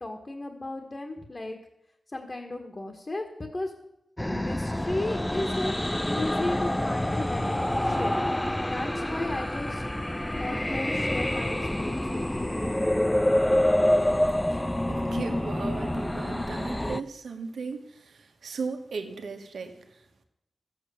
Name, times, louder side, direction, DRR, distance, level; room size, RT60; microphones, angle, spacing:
voice 1, 0.0-1.6 2.1-3.7 4.3-5.7 6.1-8.3 8.7-9.8 10.3-12.5, left 2 dB, 35° left, 2 dB, 1.6 m, -35 dB
sound 1, 4.2-17.0, left 1 dB, 10° left, 0.5 m, -27 dB
voice 2, 14.9-19.8, right 4 dB, 90° right, 5 dB, 1.5 m, -36 dB
14.0 x 8.1 x 7.0 m, 0.86 s
wide cardioid pair, 90°, 0 cm